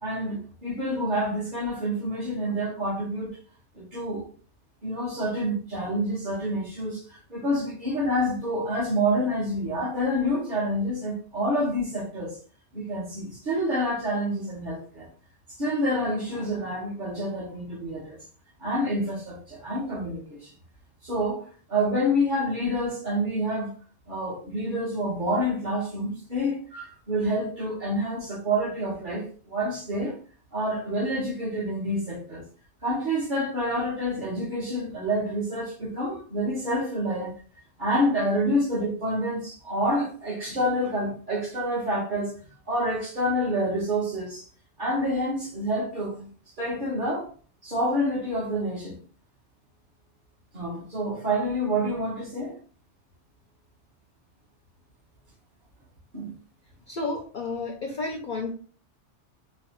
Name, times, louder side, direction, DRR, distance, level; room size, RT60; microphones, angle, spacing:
voice 1, 0.0-3.3 3.7-4.3 4.8-12.4 12.7-15.1 15.6-18.2 18.6-20.5 21.0-23.7 24.1-30.2 30.5-32.4 32.8-37.3 37.8-42.3 42.7-44.5 44.8-46.3 46.6-47.3 47.6-49.0 50.5-52.6 56.1-56.3, equal, 45° right, 1.6 m, -28 dB
voice 2, 56.9-58.5, left 3 dB, 55° left, 0.6 m, -31 dB
4.0 x 2.5 x 2.9 m
omnidirectional pair, 1.2 m